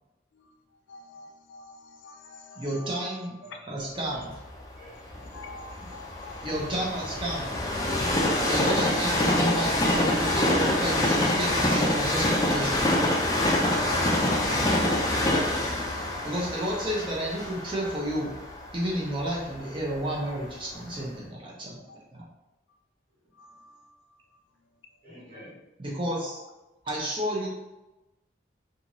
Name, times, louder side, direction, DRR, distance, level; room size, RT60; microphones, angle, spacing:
voice 1, 0.9-2.9 5.1-6.6 16.0-16.3 23.4-23.8, left 3 dB, 85° left, 4 dB, 0.4 m, -47 dB
voice 2, 2.6-4.3 5.8-5.9 6.4-7.6 8.5-12.9 16.2-18.3 18.7-21.8 22.1-22.2 25.8-26.4 26.8-27.5, right 1 dB, 25° right, -3 dB, 0.7 m, -31 dB
voice 3, 3.4-3.9 4.8-5.5 6.7-6.9 14.8-15.3 25.0-25.6, equal, 50° right, -7 dB, 1.2 m, -46 dB
Train, 4.3-20.3 20.9-21.0, left 1 dB, 20° left, 0.3 m, -26 dB
2.9 x 2.5 x 2.6 m, 0.99 s
head